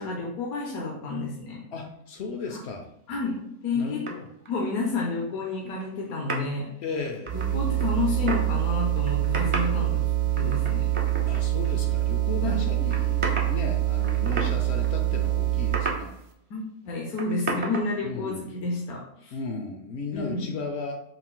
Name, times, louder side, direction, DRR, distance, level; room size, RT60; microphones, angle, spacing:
voice 1, 0.0-1.6 3.1-4.1 4.5-6.7 7.3-10.0 10.4-10.9 12.4-12.6 16.5-19.3 20.1-20.4, left 3 dB, 80° left, -1 dB, 1.2 m, -30 dB
voice 2, 1.7-2.9 3.7-4.2 6.8-7.4 11.3-16.2 18.0-18.4 19.3-21.0, left 4 dB, 65° left, 4 dB, 0.7 m, -35 dB
sound 1, 4.1-4.5 5.7-5.9 6.3-6.4 7.1-8.5 9.0-9.7 10.4-11.7 12.0-12.1 12.9-13.7 14.0-14.6 14.8-14.9 15.6-16.1 16.9-17.0 17.2-17.9, right 3 dB, 55° right, 0.3 m, -31 dB
sound 2, 7.3-16.0, right 15 dB, 75° right, 1.0 m, -25 dB
3.9 x 2.5 x 3.7 m, 0.77 s
omnidirectional pair, 1.5 m